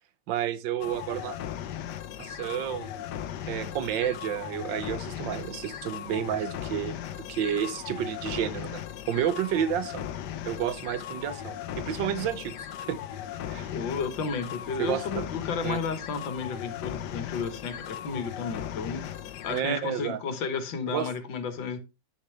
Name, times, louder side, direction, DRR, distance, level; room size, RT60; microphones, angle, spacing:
voice 1, 0.3-1.4 2.2-3.1 3.5-8.8 9.1-10.1 10.4-13.0 13.5-13.7 14.8-15.3 15.6-15.8 19.5-20.2 20.9-21.1, right 10 dB, 80° right, 1.5 m, -30 dB
sound 1, 0.8-19.6, left 10 dB, 75° left, 1.3 m, -37 dB
voice 2, 13.7-19.1 19.4-21.8, left 5 dB, 90° left, 1.9 m, -33 dB
9.5 x 6.7 x 3.2 m
omnidirectional pair, 2.0 m